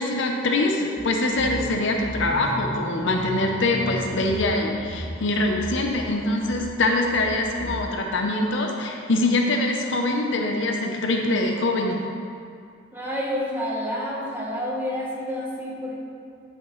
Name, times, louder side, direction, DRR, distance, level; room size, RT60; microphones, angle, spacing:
voice 1, 0.0-12.0, left 2 dB, 65° left, 2 dB, 0.7 m, -24 dB
sound 1, 1.0-1.1 1.3-6.2 6.5-6.8 7.1-7.8, equal, 10° left, 1.6 m, -35 dB
voice 2, 12.9-16.0, equal, 10° right, -4 dB, 1.1 m, -29 dB
9.0 x 5.8 x 3.2 m, 2.4 s
head